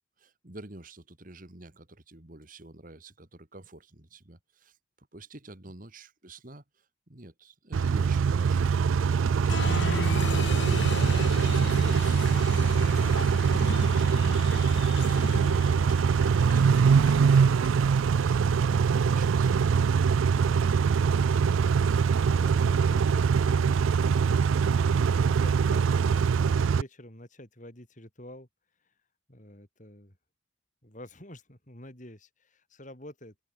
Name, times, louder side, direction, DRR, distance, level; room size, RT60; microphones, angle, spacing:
voice 1, 0.2-10.2 10.6-16.9 19.1-19.5, right 2 dB, 45° right, 2.0 m, -48 dB
Car / Idling / Accelerating revving vroom, 7.7-26.8, right 6 dB, 80° right, 0.4 m, -23 dB
Applause, 9.4-17.8, left 3 dB, 60° left, 1.1 m, -36 dB
voice 2, 14.1-14.5 20.4-21.5 22.0-24.2 24.8-28.5 29.3-30.2 30.8-33.4, left 1 dB, 40° left, 4.8 m, -48 dB
head